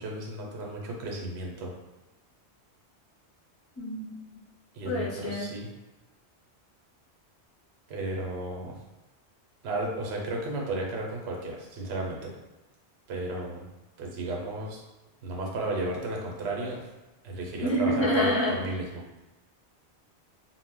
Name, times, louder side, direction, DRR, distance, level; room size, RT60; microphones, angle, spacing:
voice 1, 0.0-1.7 4.7-5.7 7.9-8.8 9.6-12.3 13.1-13.7 14.0-14.8 15.2-16.9 17.2-19.0, right 2 dB, 70° right, -1 dB, 0.9 m, -33 dB
voice 2, 3.8-4.1 4.8-5.5 17.6-18.6, equal, 35° left, -7 dB, 0.5 m, -27 dB
2.1 x 2.0 x 3.5 m, 1.1 s
omnidirectional pair, 1.1 m